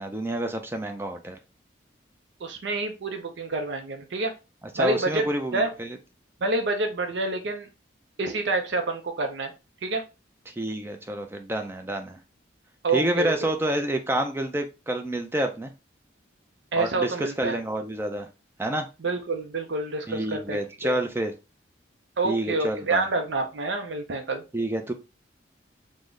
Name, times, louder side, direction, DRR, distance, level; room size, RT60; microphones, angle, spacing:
voice 1, 0.0-1.4 4.7-6.0 10.5-12.2 12.9-15.7 16.7-18.3 18.6-18.9 20.1-21.3 22.2-23.1 24.5-24.9, right 1 dB, 15° right, 5 dB, 0.4 m, -28 dB
voice 2, 2.4-4.3 4.8-5.2 5.5-5.7 6.4-7.7 8.2-9.5 9.8-10.0 12.8-13.3 16.7-17.6 19.0-20.9 22.2-24.4, right 3 dB, 70° right, 5 dB, 0.5 m, -27 dB
3.7 x 2.1 x 3.1 m, 0.28 s
head